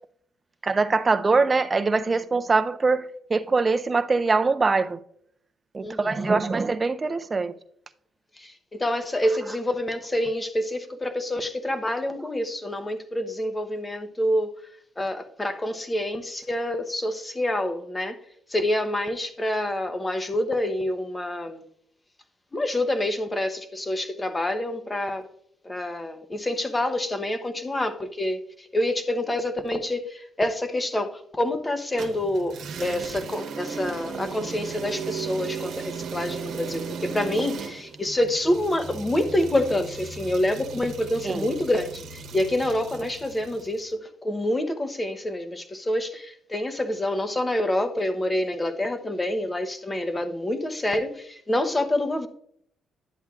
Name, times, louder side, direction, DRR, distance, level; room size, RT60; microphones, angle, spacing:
voice 1, 0.6-5.0 5.7-7.5 41.2-41.5, right 4 dB, 30° right, 0.5 m, -23 dB
voice 2, 5.8-6.3 8.4-14.5 15.0-18.2 18.5-21.6 22.5-25.3 25.6-52.3, left 1 dB, 20° left, 0.8 m, -27 dB
sound 1, 32.0-43.7, right 5 dB, 75° right, 1.1 m, -36 dB
11.0 x 7.9 x 2.4 m
cardioid pair, 90°, 0 cm